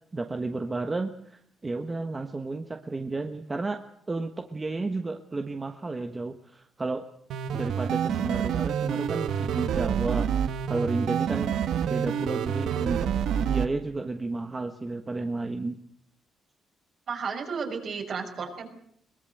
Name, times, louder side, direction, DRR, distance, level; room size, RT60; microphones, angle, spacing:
voice 1, 0.1-3.8 4.1-7.0 7.5-11.6 11.8-13.1 13.4-15.8, right 3 dB, 20° right, 6 dB, 1.3 m, -32 dB
sound 1, 7.3-13.7, right 8 dB, 80° right, 1.4 m, -27 dB
voice 2, 17.1-18.7, right 5 dB, 50° right, 3 dB, 5.9 m, -33 dB
22.5 x 21.0 x 7.9 m, 0.66 s
cardioid pair, 135°, 0 cm